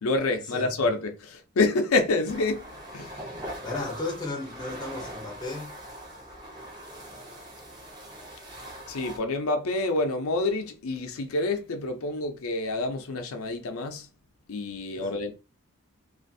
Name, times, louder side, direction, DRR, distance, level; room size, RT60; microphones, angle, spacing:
voice 1, 0.0-3.3 8.9-14.1 14.5-15.3, left 2 dB, 90° left, 0.5 m, -28 dB
voice 2, 0.5-0.9 3.6-5.7 15.0-15.2, left 2 dB, 20° left, 0.6 m, -35 dB
sound 1, 2.3-9.2, equal, 20° right, 0.7 m, -41 dB
2.5 x 2.4 x 2.6 m
head